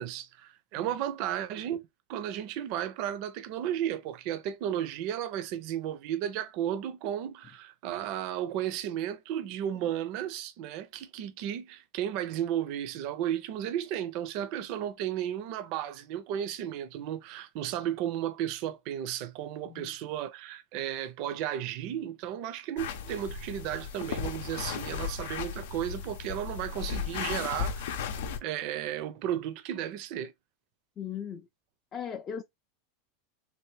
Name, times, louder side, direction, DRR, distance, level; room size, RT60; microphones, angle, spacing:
voice 1, 0.0-1.8 2.1-27.9 28.4-30.3, right 10 dB, 55° right, 0.5 m, -34 dB
voice 2, 19.6-20.0 31.0-31.5 31.9-32.4, left 8 dB, 30° left, 0.4 m, -38 dB
sound 1, 22.8-28.4, left 7 dB, 80° left, 0.6 m, -35 dB
3.4 x 2.5 x 3.2 m
supercardioid pair, 120°, 0 cm